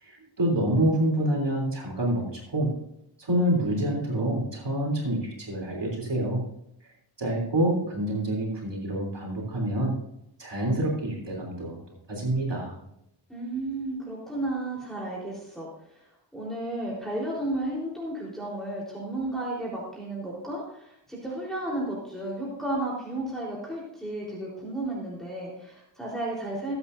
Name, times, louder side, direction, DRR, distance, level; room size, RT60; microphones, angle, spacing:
voice 1, 0.0-2.7 3.2-6.4 7.2-9.9 10.4-11.8 12.1-12.8, right 1 dB, 65° right, -1 dB, 3.5 m, -27 dB
voice 2, 13.3-16.0 16.3-26.7, right 1 dB, ahead, -6 dB, 4.0 m, -33 dB
20.0 x 8.8 x 2.7 m, 0.79 s
wide cardioid pair, 95°, 46 cm